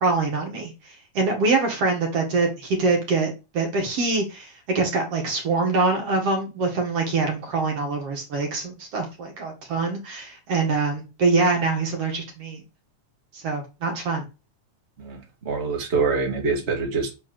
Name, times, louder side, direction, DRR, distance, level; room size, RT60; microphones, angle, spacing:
voice 1, 0.0-12.6 13.3-14.2, right 3 dB, 55° right, 2 dB, 2.7 m, -24 dB
voice 2, 15.0-17.1, right 4 dB, 25° right, 0 dB, 1.9 m, -25 dB
7.8 x 4.7 x 6.1 m, 0.29 s
omnidirectional pair, 3.5 m